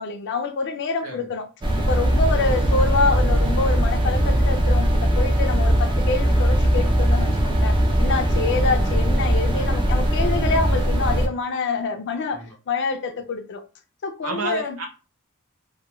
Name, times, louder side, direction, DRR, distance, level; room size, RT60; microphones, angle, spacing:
voice 1, 0.0-1.4 1.8-13.6 14.0-14.8, left 4 dB, 55° left, 0.5 m, -26 dB
sound 1, 1.6-11.3, equal, 20° right, 0.4 m, -20 dB
voice 2, 14.2-14.9, right 3 dB, 85° right, 0.8 m, -31 dB
2.3 x 2.3 x 2.9 m
head